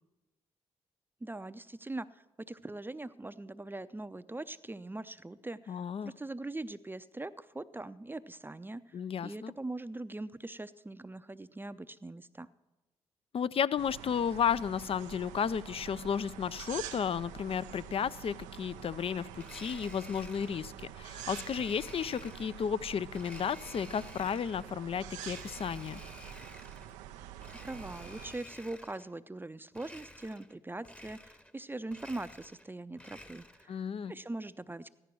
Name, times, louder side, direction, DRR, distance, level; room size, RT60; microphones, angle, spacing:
voice 1, 1.2-12.5 27.5-34.9, right 2 dB, 15° right, 12 dB, 0.6 m, -42 dB
voice 2, 5.7-6.1 8.9-9.5 13.3-26.0 33.7-34.1, left 7 dB, 50° left, 18 dB, 0.5 m, -33 dB
sound 1, 13.8-28.3, right 11 dB, 85° right, 0.5 m, -47 dB
Domestic sounds home sounds, 19.4-20.7 21.2-22.6 23.1-24.7 25.1-27.0 27.4-29.1 29.7-30.6 30.8-31.6 31.9-33.7, left 1 dB, 10° left, 1.0 m, -52 dB
14.5 x 11.0 x 6.2 m, 1.1 s
hypercardioid pair, 45°, 13 cm